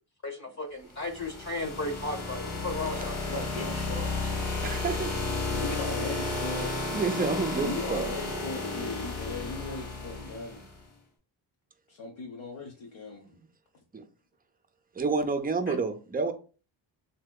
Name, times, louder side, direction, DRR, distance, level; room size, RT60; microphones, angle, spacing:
voice 1, 0.2-3.1, left 2 dB, 35° left, 0.9 m, -34 dB
sound 1, 0.9-10.7, left 3 dB, 90° left, 1.2 m, -33 dB
voice 2, 2.8-4.6 5.4-6.7 7.6-10.7 11.9-13.4, left 3 dB, 70° left, 0.8 m, -38 dB
voice 3, 4.6-5.1 6.9-8.0 13.9-14.0 15.0-16.3, right 4 dB, 20° right, 0.4 m, -29 dB
3.3 x 2.8 x 2.2 m
cardioid pair, 70°, 49 cm